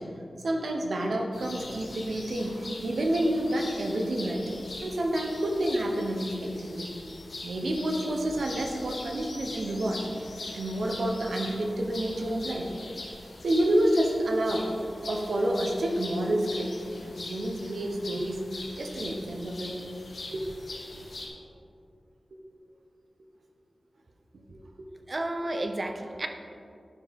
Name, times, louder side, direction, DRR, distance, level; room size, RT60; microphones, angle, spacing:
voice 1, 0.0-4.4 4.8-6.9 7.4-10.0 10.5-12.7 13.4-14.7 15.0-16.7 17.0-18.4 18.8-19.8 20.3-20.4 22.3-22.4 24.3-24.9, right 1 dB, 80° right, 1 dB, 1.0 m, -29 dB
sound 1, 1.3-21.3, left 2 dB, 80° left, 1.3 m, -42 dB
voice 2, 25.1-26.3, right 1 dB, 40° right, 5 dB, 0.7 m, -31 dB
10.0 x 6.2 x 3.7 m, 2.6 s
wide cardioid pair, 85°, 0 cm